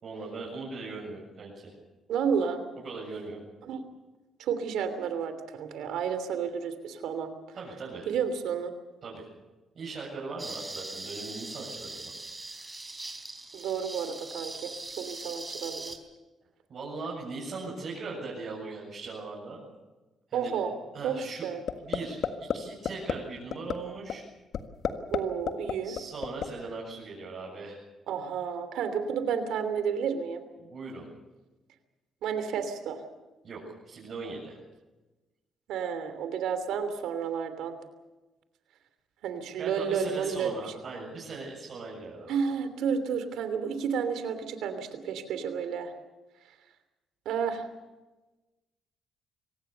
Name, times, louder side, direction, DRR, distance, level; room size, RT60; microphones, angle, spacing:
voice 1, 0.0-1.7 2.8-3.4 7.5-8.1 9.0-9.3 9.7-12.1 15.1-15.2 16.7-19.7 20.3-20.5 20.9-21.5 21.8-24.3 25.8-27.8 30.6-31.1 33.4-34.6 39.6-42.3, right 3 dB, 55° right, -5 dB, 7.6 m, -39 dB
voice 2, 2.1-2.6 3.6-3.8 4.4-7.3 8.1-8.7 13.5-16.0 20.3-20.7 21.0-21.1 21.4-21.6 25.1-26.0 28.1-30.4 32.2-33.0 35.7-37.7 39.2-40.5 42.3-45.9 47.2-47.7, right 7 dB, 85° right, 10 dB, 3.0 m, -31 dB
sound 1, 10.4-16.0, right 2 dB, 20° right, 4.0 m, -41 dB
sound 2, 21.7-22.0 22.2-22.6 22.9-23.1 23.5-23.7 24.1-24.2 24.5-25.2 25.5-26.5, left 9 dB, 65° left, 1.6 m, -28 dB
25.5 x 18.5 x 6.9 m, 1.1 s
cardioid pair, 90°, 0 cm